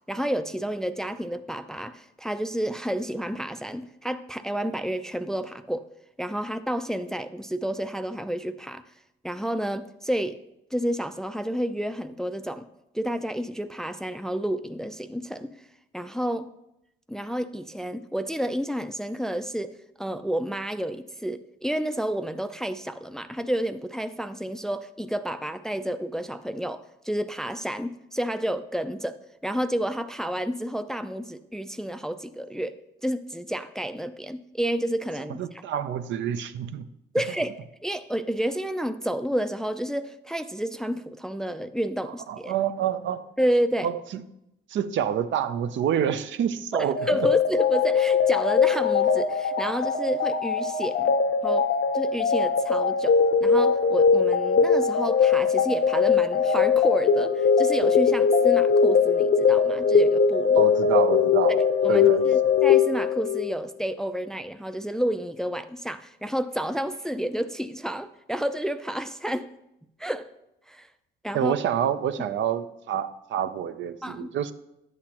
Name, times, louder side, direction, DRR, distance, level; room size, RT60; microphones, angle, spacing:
voice 1, 0.1-5.9 6.2-8.8 9.2-10.4 10.7-12.7 12.9-15.5 15.9-16.5 17.1-29.2 29.4-32.8 33.0-35.4 37.1-37.5 37.8-42.6 43.4-43.9 46.7-51.2 51.4-51.7 51.9-60.7 61.8-69.5 70.0-70.3 70.7-70.9 71.2-71.6 74.0-74.3, equal, 5° left, 10 dB, 0.4 m, -30 dB
voice 2, 35.4-36.9 42.3-43.2 43.8-44.2 44.7-47.0 60.6-61.6 61.9-62.2 71.3-74.5, right 9 dB, 70° right, 10 dB, 0.6 m, -27 dB
sound 1, 47.0-63.6, left 6 dB, 65° left, 0.8 m, -21 dB
10.5 x 8.0 x 2.9 m, 0.85 s
cardioid pair, 90°, 20 cm